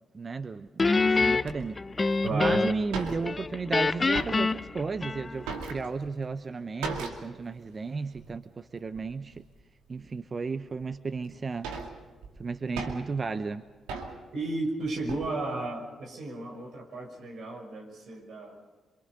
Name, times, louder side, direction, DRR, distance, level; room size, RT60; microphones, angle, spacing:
voice 1, 0.1-0.7 1.0-1.8 2.3-9.4 9.9-11.7 12.4-13.6, right 4 dB, 45° right, 11 dB, 0.9 m, -34 dB
Guitar, 0.8-2.9 3.2-5.6, left 3 dB, 35° left, 0.7 m, -26 dB
sound 1, 1.5-1.6 2.3-2.4 2.5-2.6 2.8-3.6 3.9-4.7 5.1-6.2 6.8-7.4 7.7-7.8 8.2-8.3 8.9-9.4 10.0-10.1 10.8-10.9 11.3-13.2 13.9-14.4 14.8-15.3, right 4 dB, 85° right, 2.4 m, -38 dB
voice 2, 2.2-2.6 3.1-3.2 14.3-18.6, right 2 dB, 70° right, 2 dB, 5.8 m, -34 dB
26.0 x 24.0 x 5.4 m, 1.3 s
hypercardioid pair, 45°, 0 cm